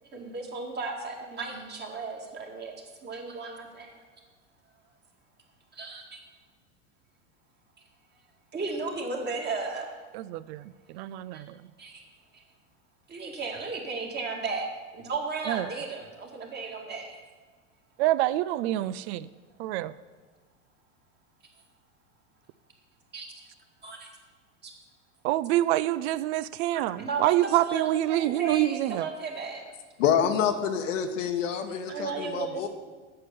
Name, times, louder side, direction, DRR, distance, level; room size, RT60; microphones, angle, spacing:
voice 1, 0.0-2.8 3.0-4.0 5.7-6.2 8.5-9.9 11.3-11.4 11.8-12.0 13.1-14.7 14.9-17.2 23.1-23.4 23.8-24.1 24.6-24.7 26.7-29.6 31.9-32.7, right 4 dB, 25° right, 1 dB, 2.1 m, -35 dB
voice 2, 10.1-10.6 10.9-11.5 15.5-15.7 18.0-19.3 19.6-19.9 25.2-29.1, right 14 dB, 55° right, 17 dB, 0.5 m, -26 dB
voice 3, 30.0-32.7, left 8 dB, 75° left, 5 dB, 1.1 m, -27 dB
8.5 x 6.9 x 6.9 m, 1.4 s
hypercardioid pair, 115°, 38 cm